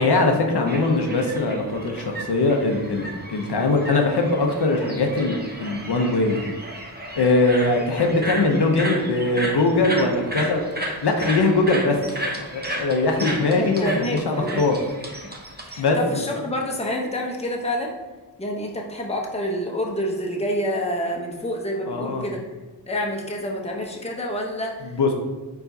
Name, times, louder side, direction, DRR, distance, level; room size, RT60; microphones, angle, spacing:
voice 1, 0.0-6.4 7.2-10.6 11.0-12.0 12.4-14.8 15.8-16.3 21.9-22.2 24.9-25.1, left 3 dB, 60° left, 2 dB, 0.6 m, -21 dB
sound 1, 0.7-15.8, right 1 dB, 20° right, 0.7 m, -33 dB
voice 2, 13.6-14.7 15.2-15.3 15.6-17.9 18.4-22.4 22.9-25.1, equal, 15° left, 0 dB, 0.7 m, -28 dB
4.6 x 4.1 x 2.6 m, 1.2 s
wide cardioid pair, 55°, 44 cm